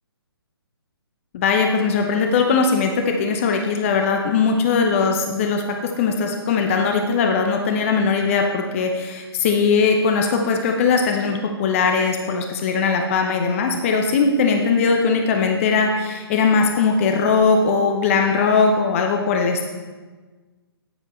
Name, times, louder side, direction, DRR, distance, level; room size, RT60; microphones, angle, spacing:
voice 1, 1.3-19.7, left 5 dB, 30° left, 3 dB, 0.8 m, -20 dB
10.0 x 8.0 x 4.3 m, 1.3 s
figure-of-eight pair, 135°, 13 cm